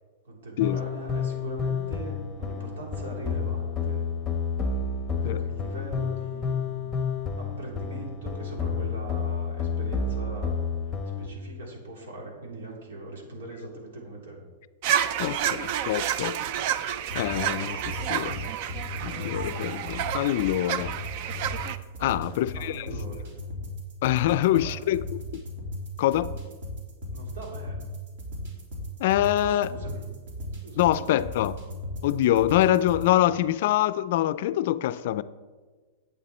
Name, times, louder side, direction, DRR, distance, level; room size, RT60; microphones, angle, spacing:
voice 1, 0.2-4.0 5.2-6.9 7.4-10.6 10.9-14.4 22.0-23.3 24.2-24.8 27.1-27.9 29.4-30.1 30.6-31.1, right 2 dB, 90° right, 3.5 m, -41 dB
sound 1, 0.6-11.3, left 5 dB, 5° left, 0.9 m, -30 dB
sound 2, 14.8-21.8, right 9 dB, 40° right, 0.5 m, -30 dB
voice 2, 15.2-16.4 17.1-18.5 19.0-20.9 22.0-22.9 24.0-25.0 25.3-25.4 26.0-26.3 29.0-29.7 30.8-31.6 32.0-35.2, left 13 dB, 50° left, 0.4 m, -25 dB
sound 3, 17.0-33.1, left 1 dB, 60° right, 3.1 m, -37 dB
11.5 x 8.4 x 4.3 m
supercardioid pair, 170°, 0 cm